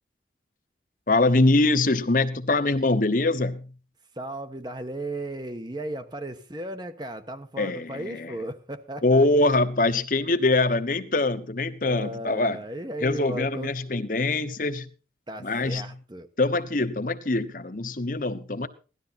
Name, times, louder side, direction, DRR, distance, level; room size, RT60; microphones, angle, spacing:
voice 1, 1.1-3.7 7.6-7.9 8.2-8.3 9.0-12.6 13.0-14.9 15.4-15.8 16.4-18.7, left 2 dB, 50° left, 1.1 m, -23 dB
voice 2, 4.1-9.2 11.8-13.7 15.3-16.3, right 1 dB, 25° right, 1.2 m, -35 dB
17.5 x 12.5 x 4.2 m
head